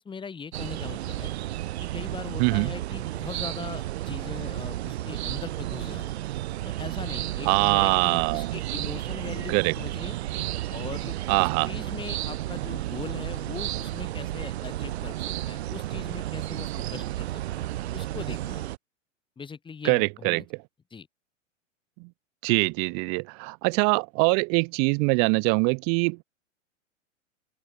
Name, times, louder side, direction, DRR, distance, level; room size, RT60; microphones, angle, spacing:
voice 1, 0.0-1.3 1.9-6.2 6.6-10.2 10.7-15.2 15.5-18.7 19.4-20.4 20.9-21.1, left 5 dB, 15° left, 1.8 m, -40 dB
sound 1, 0.5-18.8, right 14 dB, 55° right, 1.9 m, -32 dB
voice 2, 2.4-2.7 7.5-8.6 9.5-9.7 11.3-11.7 19.8-20.4 22.0-22.1 22.4-26.2, right 40 dB or more, 25° right, 0.5 m, -23 dB
open air
figure-of-eight pair, 100°, 38 cm